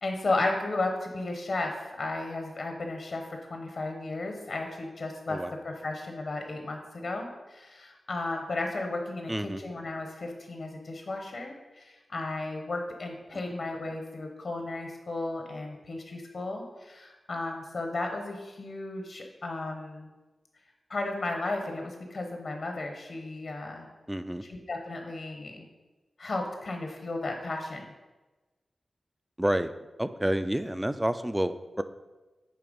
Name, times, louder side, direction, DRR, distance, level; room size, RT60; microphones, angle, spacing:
voice 1, 0.0-20.1 20.9-23.9 24.4-25.7 26.2-27.9, left 2 dB, 60° left, 3 dB, 0.9 m, -34 dB
voice 2, 9.3-9.6 24.1-24.4 29.4-29.7 30.0-31.8, right 1 dB, 10° right, 11 dB, 0.3 m, -29 dB
8.6 x 3.4 x 5.2 m, 1.2 s
wide cardioid pair, 120°, 0 cm